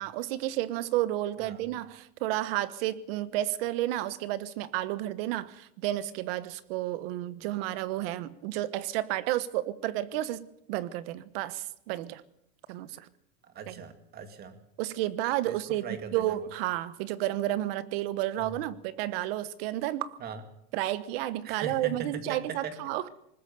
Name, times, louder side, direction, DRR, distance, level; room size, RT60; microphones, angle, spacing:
voice 1, 0.0-12.2 12.7-13.1 13.7-13.8 14.8-15.8 16.1-20.2 20.7-23.0, right 14 dB, 55° right, 1.3 m, -31 dB
voice 2, 1.4-1.7 13.4-14.6 15.5-16.5 18.4-18.6 20.2-20.4 21.4-22.9, right 5 dB, 25° right, 2.3 m, -40 dB
20.0 x 20.0 x 6.9 m
supercardioid pair, 165°, 34 cm